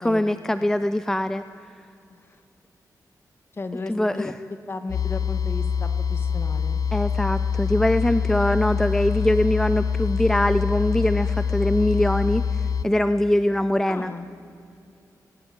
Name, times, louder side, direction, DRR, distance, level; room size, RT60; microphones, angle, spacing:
voice 1, 0.0-1.4 3.9-4.3 6.9-12.4 12.8-14.1, left 1 dB, 5° left, 12 dB, 0.5 m, -22 dB
voice 2, 3.5-4.3 4.7-6.8 13.9-14.3, left 3 dB, 35° left, 9 dB, 1.6 m, -34 dB
sound 1, 4.9-12.8, left 7 dB, 60° left, 0.5 m, -25 dB
20.0 x 17.0 x 9.5 m, 2.6 s
wide cardioid pair, 155°, 7 cm